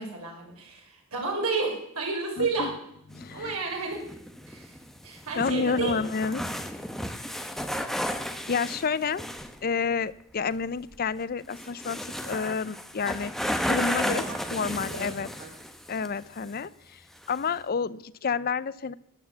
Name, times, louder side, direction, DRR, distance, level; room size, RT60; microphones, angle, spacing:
voice 1, 0.0-2.7 3.3-4.1 4.5-4.8 5.0-6.0 14.0-14.4 14.7-15.0 15.4-15.5, right 3 dB, 90° right, 0 dB, 5.1 m, -31 dB
voice 2, 2.4-2.7 3.1-3.6 5.4-6.4 8.5-9.2 9.6-13.3 13.7-14.2 14.5-15.3 15.9-17.0 17.3-18.9, left 5 dB, 45° left, 18 dB, 0.5 m, -29 dB
sound 1, 3.1-9.6 10.9-11.0 11.4-16.1 16.4-16.5 17.2-17.6, equal, ahead, 0.9 m, -33 dB
13.5 x 9.5 x 8.3 m, 0.76 s
head